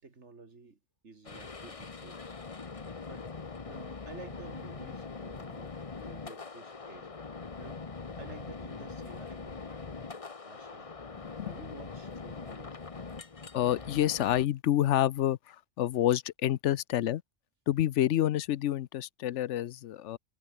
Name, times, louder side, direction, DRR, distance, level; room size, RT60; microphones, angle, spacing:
voice 1, 0.0-2.2 3.1-3.3 3.6-7.1 7.6-7.8 8.2-10.1 10.5-10.9 11.4-12.8, right 4 dB, 70° right, 2.7 m, -51 dB
sound 1, 1.2-14.5, left 4 dB, 30° left, 1.0 m, -42 dB
voice 2, 13.5-17.2 17.7-20.2, left 12 dB, 75° left, 0.9 m, -28 dB
omnidirectional pair, 1.3 m